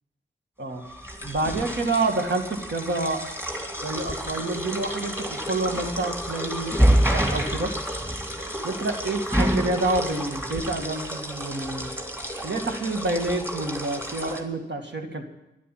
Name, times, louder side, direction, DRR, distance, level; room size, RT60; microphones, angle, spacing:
sound 1, 0.8-14.4, equal, 10° right, 2.4 m, -28 dB
voice 1, 1.2-3.3 3.8-7.8 8.6-11.9 12.4-15.2, right 2 dB, 65° right, 3 dB, 2.0 m, -28 dB
11.5 x 11.0 x 9.1 m, 0.93 s
wide cardioid pair, 90°, 19 cm